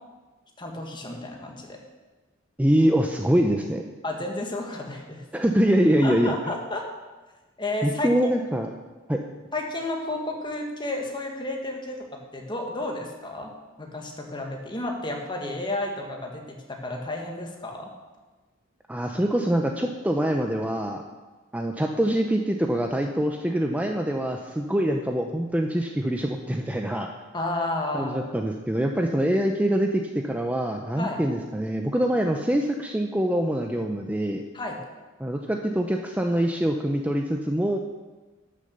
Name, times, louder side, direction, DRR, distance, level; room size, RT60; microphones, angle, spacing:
voice 1, 0.6-1.8 4.0-5.2 6.0-6.8 7.6-8.3 9.5-13.5 13.8-17.9 27.3-28.2 31.0-31.2 34.5-34.8, left 2 dB, 25° left, 2 dB, 1.7 m, -32 dB
voice 2, 2.6-3.8 5.3-6.4 7.8-8.7 9.1-9.2 18.9-21.0 21.5-27.1 27.9-34.4 35.2-37.8, right 1 dB, 5° right, 3 dB, 0.6 m, -24 dB
12.5 x 6.7 x 6.6 m, 1.2 s
head